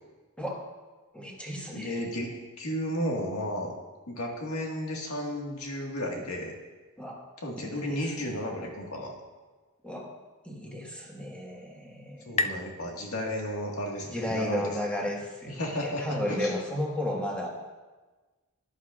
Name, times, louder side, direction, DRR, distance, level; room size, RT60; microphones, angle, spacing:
voice 1, 1.1-2.1 7.0-7.2 7.6-8.3 9.8-10.1 10.4-12.5 14.1-17.5, left 1 dB, 5° left, -3 dB, 1.6 m, -34 dB
voice 2, 1.7-3.7 4.1-6.5 7.4-9.1 12.2-14.6 15.6-16.5, equal, 80° left, 0 dB, 1.7 m, -33 dB
sound 1, 10.9-14.3, left 3 dB, 30° left, 0.3 m, -37 dB
11.5 x 11.5 x 2.5 m, 1.3 s
head